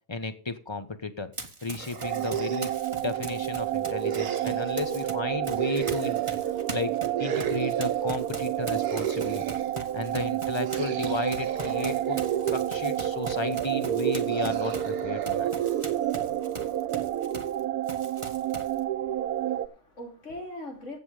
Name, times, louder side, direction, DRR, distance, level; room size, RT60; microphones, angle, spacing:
voice 1, 0.1-1.3 1.6-2.7 3.0-6.2 6.7-9.4 9.9-12.2 12.5-15.5, left 3 dB, 20° left, 1.1 m, -33 dB
Run, 1.3-5.1 5.4-17.6 17.9-18.8, right 2 dB, 20° right, 1.3 m, -41 dB
sound 1, 1.8-2.9 4.1-4.8 5.6-6.5 7.2-8.1 8.7-9.8 10.6-12.7 14.2-16.7, right 6 dB, 60° right, 1.5 m, -41 dB
sound 2, 2.0-19.7, right 11 dB, 80° right, 1.3 m, -29 dB
voice 2, 19.1-21.0, left 1 dB, 55° left, 3.5 m, -42 dB
15.5 x 7.6 x 5.1 m
omnidirectional pair, 1.6 m